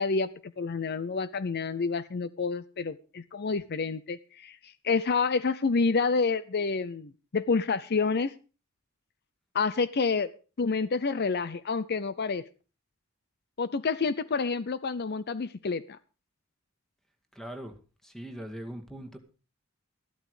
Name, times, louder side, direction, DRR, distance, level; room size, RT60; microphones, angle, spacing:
voice 1, 0.0-8.3 9.5-10.3 10.6-12.4 13.6-16.0, left 4 dB, 50° left, 16 dB, 0.6 m, -28 dB
voice 2, 17.3-17.7 18.0-19.2, right 1 dB, ahead, 7 dB, 2.1 m, -40 dB
14.0 x 12.5 x 4.9 m, 0.34 s
head